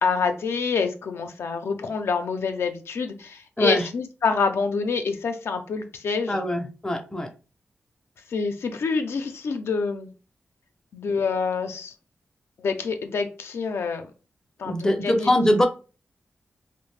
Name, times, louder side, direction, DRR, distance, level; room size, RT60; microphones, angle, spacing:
voice 1, 0.0-6.4 8.3-10.1 10.9-11.9 12.6-14.1 14.6-15.3, left 5 dB, 80° left, 6 dB, 0.4 m, -27 dB
voice 2, 6.3-7.3 14.6-15.7, left 1 dB, 15° left, 5 dB, 0.4 m, -22 dB
2.4 x 2.0 x 3.2 m, 0.34 s
wide cardioid pair, 100°, 4 cm